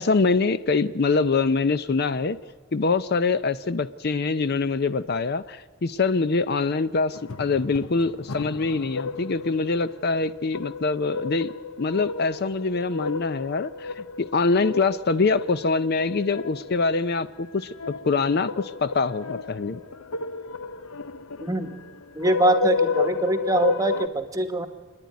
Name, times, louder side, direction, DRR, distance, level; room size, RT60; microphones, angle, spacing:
voice 1, 0.0-2.4 2.7-11.5 11.8-19.8, left 4 dB, 50° left, 13 dB, 0.5 m, -24 dB
sound 1, 7.1-24.1, left 4 dB, 90° left, 0.8 m, -32 dB
voice 2, 21.4-21.7 22.1-24.7, right 2 dB, 15° right, 8 dB, 1.2 m, -23 dB
27.5 x 10.5 x 9.4 m, 1.4 s
head